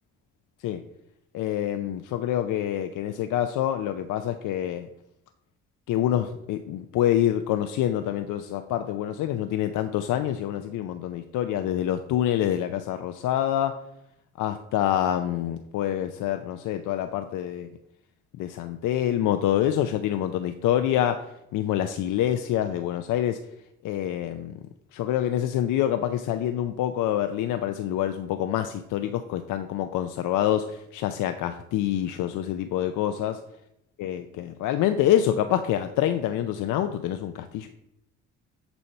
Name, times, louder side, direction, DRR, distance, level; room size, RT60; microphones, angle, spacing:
voice 1, 1.3-4.9 5.9-13.8 14.4-17.7 18.4-21.3 21.5-23.4 23.8-24.6 24.9-33.4 34.0-37.7, left 11 dB, 85° left, 8 dB, 0.6 m, -26 dB
7.0 x 4.4 x 6.5 m, 0.80 s
cardioid pair, 90°, 30 cm